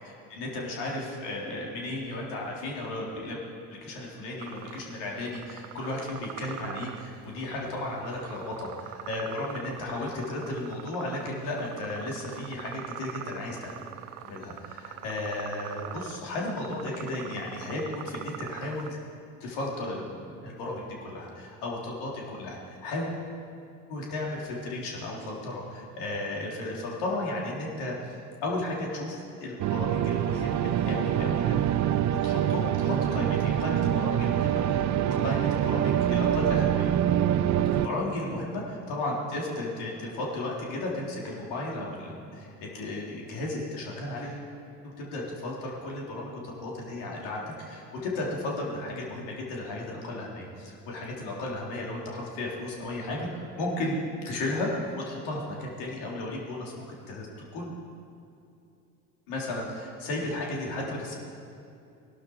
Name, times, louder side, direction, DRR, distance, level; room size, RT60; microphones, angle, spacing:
voice 1, 0.1-3.4 3.7-13.8 14.2-19.0 19.4-23.2 23.9-28.0 28.4-31.6 32.2-37.0 37.7-44.5 44.8-54.0 54.2-57.3 57.5-57.7 59.3-61.2, left 2 dB, 60° left, -2 dB, 3.8 m, -34 dB
sound 1, 4.4-18.9, right 12 dB, 70° right, 0.9 m, -43 dB
sound 2, 29.6-37.9, right 10 dB, 40° right, 0.7 m, -25 dB
22.0 x 11.5 x 4.9 m, 2.7 s
figure-of-eight pair, 65°, 46 cm